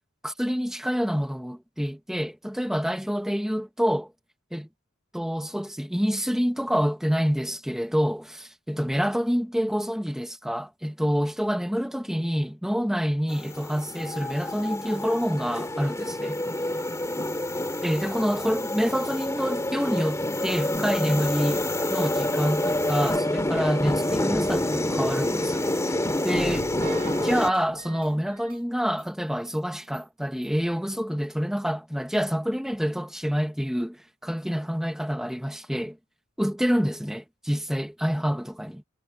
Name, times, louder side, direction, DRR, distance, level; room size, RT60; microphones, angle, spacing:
voice 1, 0.2-4.1 4.5-4.7 5.1-16.4 17.8-21.6 21.9-25.7 26.2-26.7 27.2-36.0 36.4-38.7, equal, ahead, 1.4 m, -27 dB
sound 1, 13.3-27.5, left 1 dB, 15° left, 2.4 m, -27 dB
sound 2, 26.3-29.1 29.5-29.6 29.9-30.0 30.4-30.5, right 3 dB, 45° right, 2.1 m, -40 dB
head